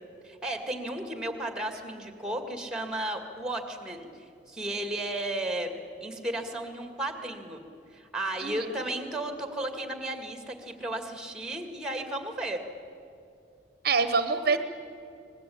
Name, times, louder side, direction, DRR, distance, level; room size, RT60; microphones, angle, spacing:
voice 1, 0.2-4.1 4.5-5.7 6.0-7.6 7.9-12.6, right 1 dB, 5° right, 6 dB, 2.1 m, -34 dB
voice 2, 8.4-8.8 13.8-14.6, right 4 dB, 55° right, 10 dB, 0.9 m, -26 dB
25.0 x 20.0 x 8.7 m, 2.6 s
head